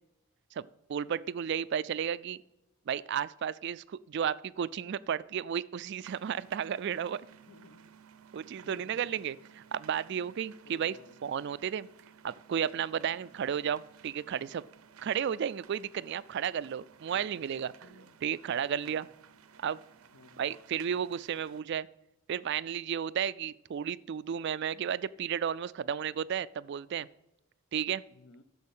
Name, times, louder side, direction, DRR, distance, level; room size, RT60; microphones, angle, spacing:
voice 1, 0.5-2.4 2.9-7.2 8.3-11.0 11.2-11.9 12.2-14.6 15.0-19.1 19.6-19.8 20.4-21.9 22.3-27.1 27.7-28.0, right 8 dB, 50° right, 18 dB, 0.3 m, -33 dB
voice 2, 1.4-1.7 7.3-7.9 8.6-9.2 10.2-10.3 10.6-11.2 13.2-13.4 15.0-15.1 17.1-18.2 18.7-19.1 20.1-20.5 28.1-28.4, left 4 dB, 70° left, 12 dB, 0.7 m, -57 dB
sound 1, 6.0-21.6, right 7 dB, 85° right, 0.7 m, -57 dB
10.5 x 6.9 x 5.5 m, 0.91 s
head